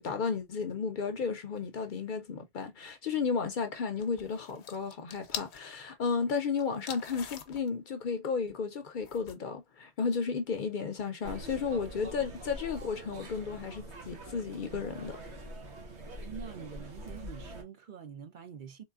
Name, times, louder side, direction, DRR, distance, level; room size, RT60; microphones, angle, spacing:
voice 1, 0.0-15.2, left 5 dB, 55° left, 0.6 m, -33 dB
sound 1, 4.0-5.6 6.6-7.7 9.0-9.3, left 8 dB, 85° left, 0.9 m, -43 dB
sound 2, 11.2-17.6, right 1 dB, 85° right, 1.4 m, -44 dB
voice 2, 16.1-18.8, right 7 dB, 55° right, 0.7 m, -46 dB
3.7 x 3.2 x 2.3 m
omnidirectional pair, 1.1 m